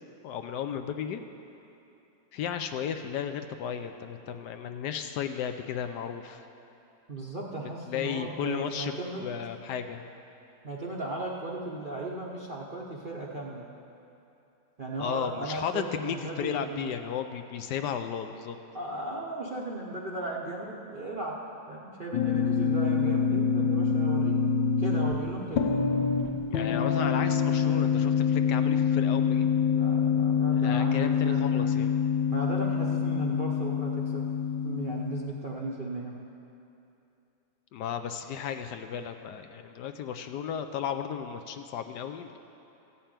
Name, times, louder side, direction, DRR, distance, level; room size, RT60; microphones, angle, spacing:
voice 1, 0.2-1.2 2.3-6.4 7.9-8.9 9.2-10.0 15.0-18.6 26.5-29.5 30.5-31.9 37.7-42.4, left 8 dB, 75° left, 7 dB, 1.1 m, -34 dB
voice 2, 7.1-9.3 10.6-13.7 14.8-16.9 18.7-21.4 21.7-25.6 29.6-31.7 32.3-34.2 34.6-36.2, right 2 dB, 45° right, -3 dB, 0.7 m, -36 dB
sound 1, 22.1-35.2, left 6 dB, 90° left, 1.6 m, -26 dB
14.5 x 5.7 x 8.8 m, 2.8 s
omnidirectional pair, 2.0 m